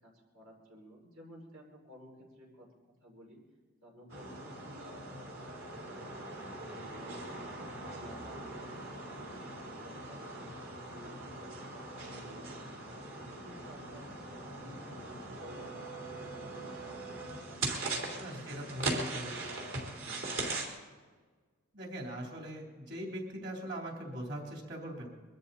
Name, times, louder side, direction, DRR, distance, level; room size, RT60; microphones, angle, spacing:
voice 1, 0.0-2.7 3.0-3.4 3.8-5.3 5.6-18.3 18.8-20.3, equal, 85° right, -2 dB, 5.7 m, -55 dB
sound 1, 4.1-20.7, right 2 dB, 70° right, 3.8 m, -41 dB
voice 2, 18.2-19.3 21.7-25.1, equal, 55° right, 0 dB, 3.6 m, -41 dB
23.5 x 13.0 x 4.2 m, 1.4 s
head